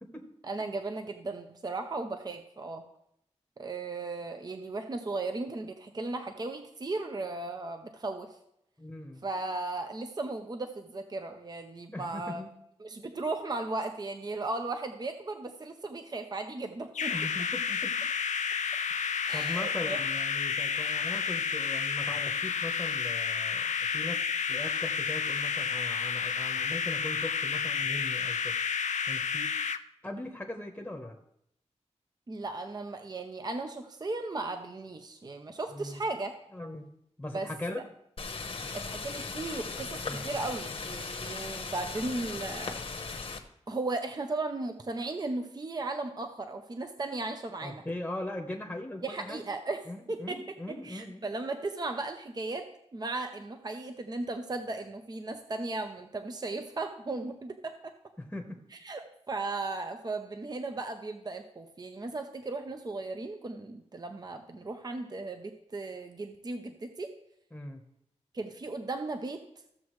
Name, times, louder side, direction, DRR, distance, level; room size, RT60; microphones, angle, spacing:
voice 1, 0.4-2.8 3.6-8.3 9.2-12.4 12.8-17.1 19.2-20.0 32.3-36.4 37.3-37.5 38.7-43.2 43.7-47.8 49.0-49.8 50.1-50.4 50.8-52.6 52.9-57.9 58.8-67.1 68.3-69.4, right 3 dB, 35° right, 6 dB, 0.6 m, -36 dB
voice 2, 8.8-9.2 11.9-12.5 17.1-18.0 19.0-24.2 24.5-28.5 29.1-29.5 30.0-31.2 35.7-36.0 36.5-36.9 37.2-37.8 40.1-40.4 47.6-49.4 49.9-51.2 58.2-58.6 67.5-67.8, left 1 dB, 10° left, 3 dB, 1.0 m, -40 dB
sound 1, 16.9-29.8, left 6 dB, 85° left, 0.4 m, -31 dB
sound 2, 38.2-43.4, left 4 dB, 50° left, 1.0 m, -38 dB
14.5 x 7.1 x 3.1 m, 0.76 s
wide cardioid pair, 120°, 12 cm